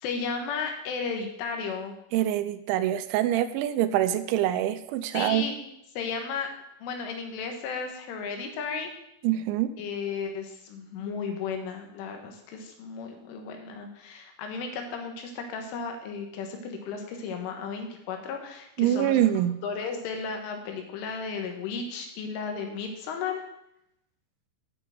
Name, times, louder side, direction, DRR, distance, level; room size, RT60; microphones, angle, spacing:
voice 1, 0.0-2.0 5.1-5.6 6.0-6.5 6.8-8.9 9.8-19.2 19.6-23.4, left 5 dB, 85° left, 4 dB, 4.1 m, -34 dB
voice 2, 2.1-5.5 9.2-9.7 18.8-19.5, right 12 dB, 85° right, 11 dB, 3.0 m, -25 dB
9.8 x 6.9 x 7.7 m, 0.80 s
omnidirectional pair, 5.5 m